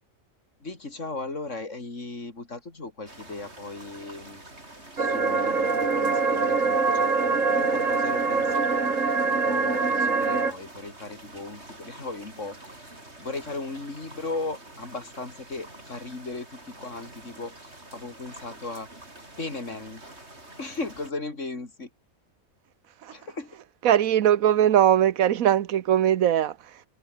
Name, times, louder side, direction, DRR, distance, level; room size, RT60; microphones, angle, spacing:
voice 1, 0.6-4.4 5.0-18.9 19.4-20.0 20.6-21.9 23.1-23.6, left 3 dB, 60° left, 3.9 m, -37 dB
sound 1, 3.1-21.1, right 2 dB, 50° right, 6.1 m, -47 dB
sound 2, 5.0-10.5, right 4 dB, 65° right, 2.9 m, -24 dB
voice 2, 23.8-26.6, right 10 dB, 85° right, 1.3 m, -20 dB
omnidirectional pair, 1.4 m